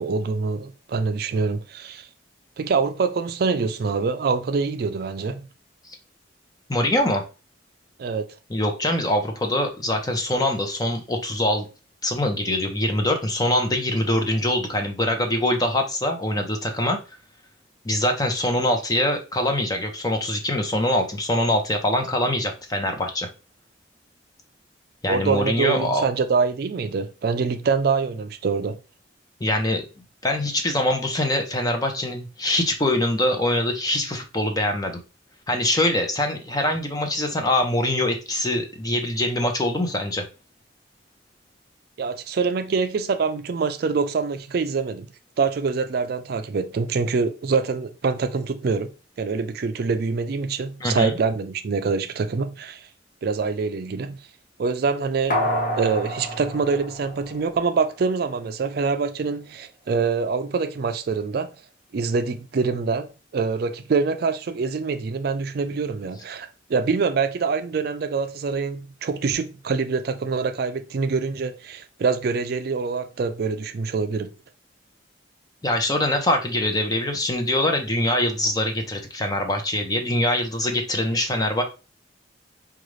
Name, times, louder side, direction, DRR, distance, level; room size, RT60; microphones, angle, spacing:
voice 1, 0.0-2.1 2.6-5.5 8.0-8.3 25.1-28.8 42.0-45.1 45.4-48.9 49.2-52.9 53.2-54.2 54.6-61.5 61.9-74.3, right 4 dB, 55° right, 0.4 m, -25 dB
voice 2, 6.7-7.2 8.5-11.7 12.0-17.0 17.8-23.3 25.0-26.1 29.4-29.8 30.2-35.0 35.5-40.2 50.8-51.2 75.6-81.6, left 1 dB, 20° left, 0.7 m, -23 dB
sound 1, 55.3-57.9 58.2-58.3, equal, 45° left, 1.1 m, -28 dB
5.1 x 2.4 x 3.2 m
head